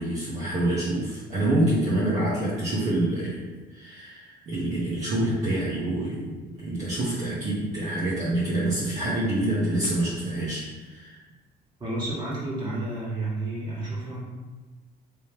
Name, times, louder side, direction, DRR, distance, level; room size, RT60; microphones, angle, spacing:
voice 1, 0.0-3.4 3.7-11.2, right 1 dB, 45° right, -8 dB, 0.9 m, -27 dB
voice 2, 11.8-14.2, right 2 dB, 25° right, -7 dB, 1.5 m, -31 dB
3.5 x 3.0 x 2.8 m, 1.3 s
cardioid pair, 110°, 17 cm